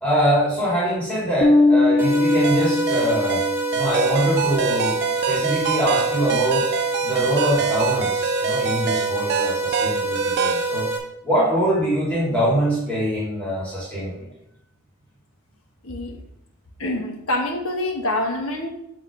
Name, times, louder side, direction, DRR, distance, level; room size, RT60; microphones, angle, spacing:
voice 1, 0.0-3.4 3.7-5.0 5.3-6.7 7.0-10.9 11.2-14.3, right 1 dB, 5° left, -9 dB, 2.8 m, -23 dB
Bass guitar, 1.4-4.1, left 2 dB, 35° left, 0.7 m, -20 dB
sound 1, 2.0-11.0, right 3 dB, 10° right, 1.1 m, -26 dB
sound 2, 2.4-10.7, right 6 dB, 50° right, 0.4 m, -26 dB
voice 2, 15.8-16.1 16.8-18.7, left 1 dB, 75° left, 1 dB, 1.4 m, -26 dB
8.0 x 3.9 x 5.0 m, 0.81 s
head